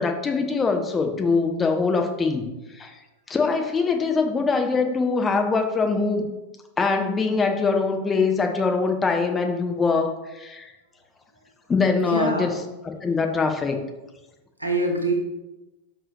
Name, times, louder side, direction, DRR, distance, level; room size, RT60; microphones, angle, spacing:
voice 1, 0.0-2.5 2.8-2.9 3.3-6.3 6.8-10.7 11.7-12.5 13.0-13.8, left 4 dB, 15° left, 4 dB, 0.9 m, -23 dB
voice 2, 12.0-12.5 13.0-13.2 14.6-15.1, right 2 dB, 85° right, 2 dB, 1.2 m, -25 dB
6.0 x 5.3 x 4.7 m, 1.0 s
figure-of-eight pair, 90°, 0 cm